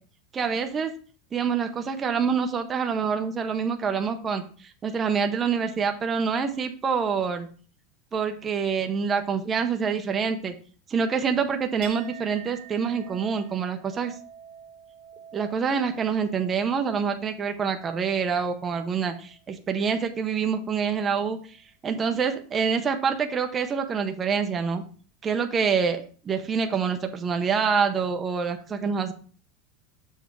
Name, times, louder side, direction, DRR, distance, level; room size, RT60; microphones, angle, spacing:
voice 1, 0.3-0.9 1.3-4.4 4.8-7.5 8.1-10.5 10.9-14.1 15.3-21.4 21.8-24.8 25.2-29.1, right 6 dB, 15° right, 5 dB, 0.6 m, -26 dB
Chink clink, 11.8-19.5 19.8-20.5, right 9 dB, 45° right, 1.4 m, -48 dB
7.3 x 3.4 x 6.1 m, 0.41 s
supercardioid pair, 180°, 0 cm